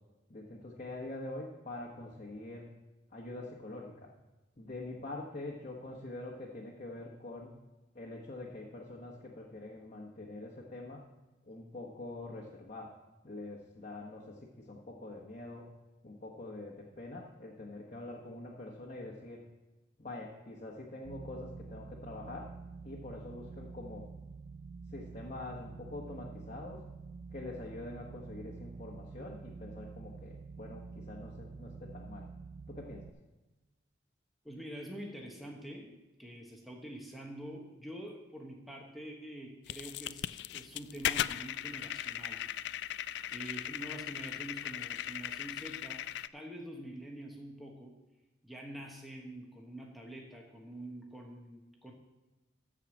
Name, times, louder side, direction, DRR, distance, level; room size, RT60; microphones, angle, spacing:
voice 1, 0.3-2.7 3.1-4.1 4.6-7.5 7.9-11.0 11.4-12.9 13.2-14.4 14.7-15.6 16.0-19.4 20.0-22.5 22.8-24.0 24.9-26.8 27.3-32.2 32.7-33.0, left 2 dB, 40° left, -2 dB, 1.3 m, -45 dB
sound 1, 21.0-33.1, right 4 dB, 70° right, 0.4 m, -48 dB
voice 2, 34.4-35.9 36.2-42.4 42.8-46.1 46.3-47.9 48.4-51.9, right 1 dB, ahead, -1 dB, 1.2 m, -46 dB
sound 2, 39.7-46.3, left 11 dB, 65° left, 0.3 m, -38 dB
14.0 x 4.9 x 7.2 m, 1.1 s
head